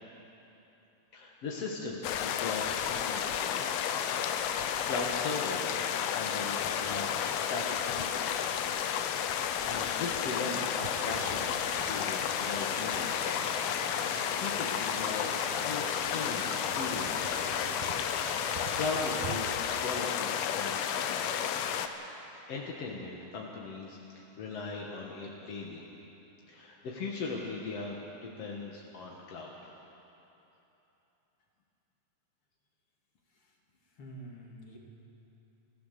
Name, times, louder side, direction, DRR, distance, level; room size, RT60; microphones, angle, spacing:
voice 1, 1.1-3.6 4.5-8.3 9.0-13.3 13.9-17.5 18.4-21.4 22.5-25.8 26.5-29.7, left 3 dB, 60° left, -2 dB, 1.7 m, -39 dB
sound 1, 2.0-21.9, left 9 dB, 75° left, 2.6 m, -32 dB
sound 2, 10.8-19.4, right 7 dB, 70° right, 2.1 m, -44 dB
voice 2, 34.0-34.8, right 1 dB, 40° left, -1 dB, 2.7 m, -47 dB
25.0 x 15.5 x 6.8 m, 3.0 s
omnidirectional pair, 4.8 m